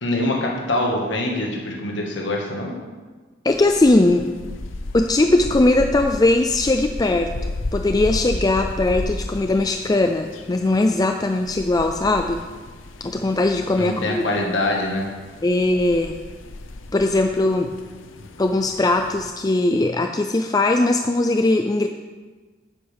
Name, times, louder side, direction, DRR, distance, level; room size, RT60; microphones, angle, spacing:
voice 1, 0.0-2.7 13.8-15.1, left 1 dB, 70° left, -1 dB, 1.6 m, -24 dB
voice 2, 3.4-4.3 4.9-7.3 7.7-12.4 13.0-14.2 15.4-16.1 16.9-17.7 18.4-21.9, left 2 dB, 20° left, 5 dB, 0.3 m, -19 dB
sound 1, 3.5-19.3, left 2 dB, 85° left, 0.7 m, -34 dB
11.5 x 9.5 x 3.5 m, 1.4 s
head